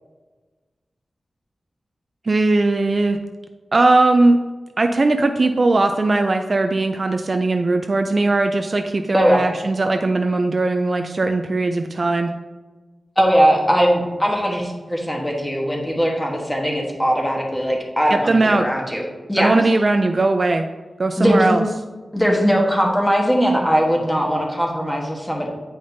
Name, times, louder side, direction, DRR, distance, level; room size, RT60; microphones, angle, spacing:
voice 1, 2.3-3.2 3.7-4.4 4.8-12.3 18.1-18.7 19.4-20.7 21.0-21.6, right 2 dB, 45° right, 6 dB, 0.3 m, -19 dB
voice 2, 9.1-9.4 13.2-19.5 21.2-21.6 22.1-25.5, equal, 10° left, 0 dB, 1.2 m, -19 dB
8.5 x 5.0 x 2.7 m, 1.3 s
wide cardioid pair, 115°, 0 cm